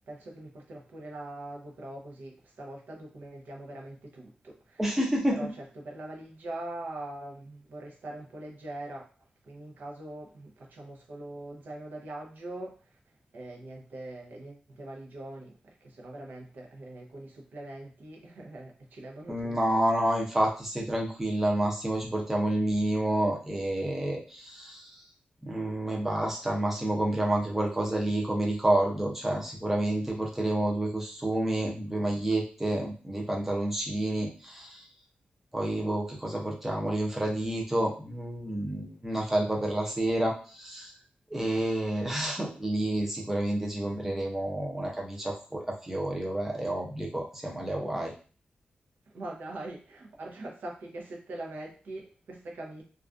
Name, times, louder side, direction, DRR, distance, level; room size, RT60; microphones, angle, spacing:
voice 1, 0.1-5.0 5.3-9.1 9.4-13.0 13.3-19.6 49.1-52.8, right 1 dB, 80° right, 0.7 m, -42 dB
voice 2, 4.8-5.5 19.3-25.0 25.4-34.9 35.5-40.9 41.3-48.1, right 1 dB, 10° right, 0.5 m, -29 dB
2.4 x 2.2 x 2.4 m
wide cardioid pair, 165°, 3 cm